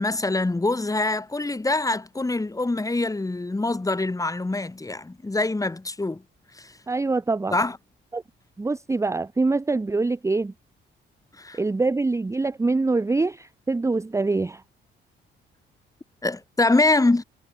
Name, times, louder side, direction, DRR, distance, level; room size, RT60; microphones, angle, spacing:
voice 1, 0.0-6.2 6.5-6.8 7.5-7.8 11.4-11.6 16.2-17.2, left 2 dB, 15° left, 6.0 m, -24 dB
voice 2, 6.9-7.6 8.1-8.2 8.6-10.5 11.5-14.6, right 3 dB, 15° right, 0.7 m, -24 dB
cardioid pair, 90°, 20 cm